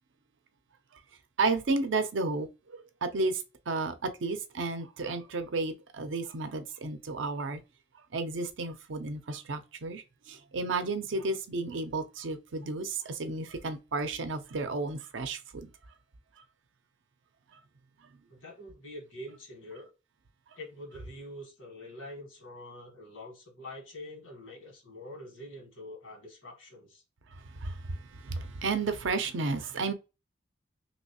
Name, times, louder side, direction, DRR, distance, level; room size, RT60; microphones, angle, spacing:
voice 1, 1.4-7.6 8.1-15.7 27.3-29.9, right 3 dB, 70° right, 0.6 m, -32 dB
voice 2, 18.3-19.9 20.6-27.0, left 1 dB, 90° left, 1.6 m, -45 dB
3.1 x 2.9 x 2.8 m
head